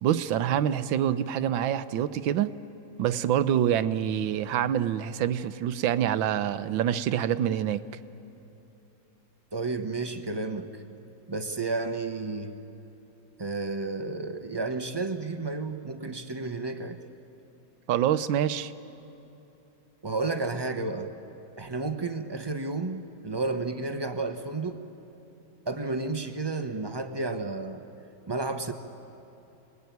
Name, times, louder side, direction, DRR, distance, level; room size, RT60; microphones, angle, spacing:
voice 1, 0.0-2.5 3.0-7.8 17.9-18.7, right 10 dB, 85° right, 13 dB, 1.5 m, -26 dB
voice 2, 9.5-10.7 11.3-12.6 13.4-17.0 20.0-21.1 21.5-24.8 25.7-27.8 28.3-28.7, right 3 dB, 20° right, 7 dB, 0.7 m, -31 dB
28.0 x 20.5 x 9.4 m, 3.0 s
omnidirectional pair, 2.0 m